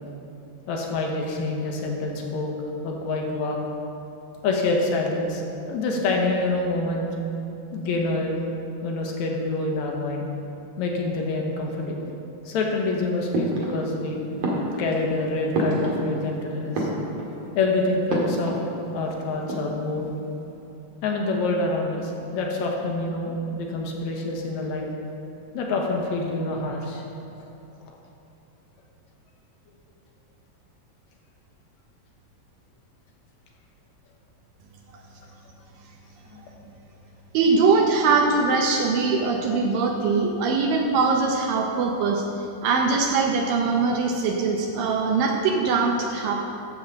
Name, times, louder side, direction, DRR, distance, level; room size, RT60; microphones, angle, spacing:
voice 1, 0.7-3.6 4.4-7.1 7.7-8.4 8.8-10.2 10.8-12.0 12.5-14.2 14.8-16.9 17.6-18.5 18.9-20.1 21.0-24.9 25.5-27.0 36.3-36.4, left 2 dB, 65° left, 0 dB, 2.1 m, -26 dB
sound 1, 13.3-14.0 14.4-16.3 16.6-17.5 18.1-18.7 19.0-19.1 19.3-20.0, right 1 dB, 50° right, 2.5 m, -28 dB
voice 2, 37.3-46.4, right 4 dB, 75° right, 2 dB, 2.2 m, -22 dB
13.5 x 4.8 x 7.5 m, 2.9 s
omnidirectional pair, 4.2 m